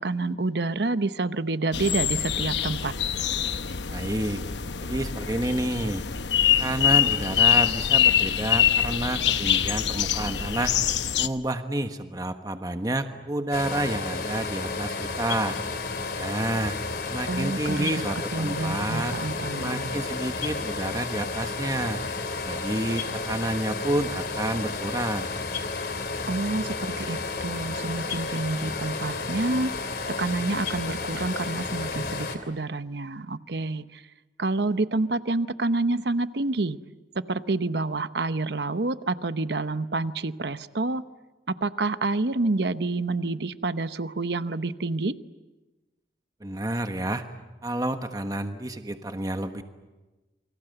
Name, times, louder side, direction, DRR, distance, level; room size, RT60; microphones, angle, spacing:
voice 1, 0.0-2.9 17.3-18.1 18.3-19.9 26.3-29.7 30.1-34.0 34.4-36.8 37.1-41.0 41.5-45.2, right 2 dB, 65° right, 13 dB, 0.9 m, -28 dB
sound 1, 1.7-11.3, left 9 dB, 75° left, 0.9 m, -24 dB
voice 2, 3.9-4.4 4.8-6.0 6.6-10.7 11.2-15.5 16.2-16.8 17.1-19.1 19.6-22.0 22.4-25.3 46.4-47.2 47.6-49.6, right 1 dB, 20° right, 7 dB, 1.3 m, -29 dB
sound 2, 13.5-32.4, left 4 dB, 60° left, 2.9 m, -32 dB
28.0 x 24.5 x 7.9 m, 1.1 s
head